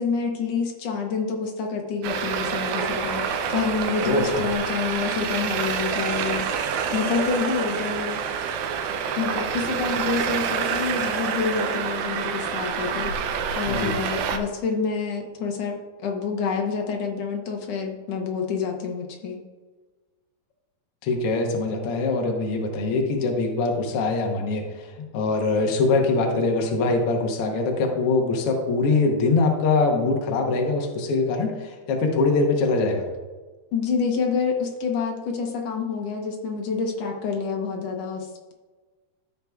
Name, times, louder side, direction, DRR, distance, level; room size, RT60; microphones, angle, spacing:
voice 1, 0.0-8.2 9.1-15.8 16.0-19.4 33.7-38.5, left 5 dB, 70° left, 1 dB, 1.6 m, -28 dB
Traffic noise roadway noise, 2.0-14.4, right 7 dB, 90° right, 2.5 m, -27 dB
voice 2, 4.0-4.4 13.7-13.9 21.0-33.1, left 3 dB, 90° left, 2 dB, 1.2 m, -23 dB
13.5 x 6.7 x 2.3 m, 1.3 s
omnidirectional pair, 4.1 m